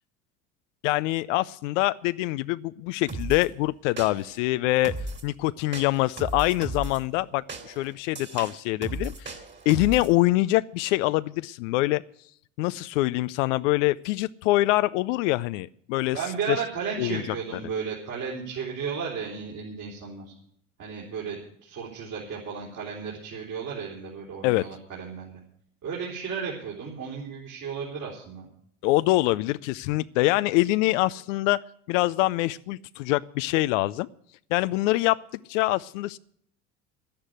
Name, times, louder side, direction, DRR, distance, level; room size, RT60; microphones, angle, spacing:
voice 1, 0.8-4.9 5.2-9.4 9.7-12.0 12.6-16.2 16.5-16.6 17.0-17.2 24.4-24.7 28.8-31.6 31.9-34.1 34.5-35.2 35.5-36.2, left 18 dB, 70° left, 15 dB, 0.5 m, -24 dB
sound 1, 3.1-3.5 4.0-4.4 4.8-5.3 5.7-7.0 7.5-10.1, right 2 dB, 30° right, 2.5 m, -36 dB
voice 2, 16.1-20.3 20.8-25.4 25.8-28.5, right 6 dB, 55° right, -4 dB, 4.0 m, -34 dB
11.5 x 10.0 x 8.1 m, 0.65 s
hypercardioid pair, 75°, 38 cm